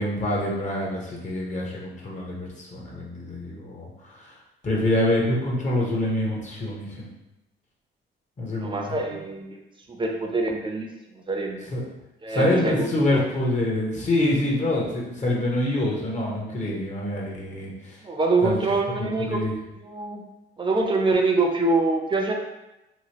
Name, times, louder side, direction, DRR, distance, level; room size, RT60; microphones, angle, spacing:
voice 1, 0.0-4.3 4.6-7.0 8.4-9.0 11.7-11.8 12.3-18.0 18.4-18.6 19.0-19.6, left 1 dB, 35° left, -3 dB, 0.8 m, -26 dB
voice 2, 8.6-9.5 9.9-11.7 12.2-13.2 18.0-19.4 19.8-20.2 20.6-22.3, right 3 dB, 25° right, 2 dB, 0.6 m, -25 dB
3.0 x 2.4 x 2.9 m, 0.95 s
cardioid pair, 90°, 20 cm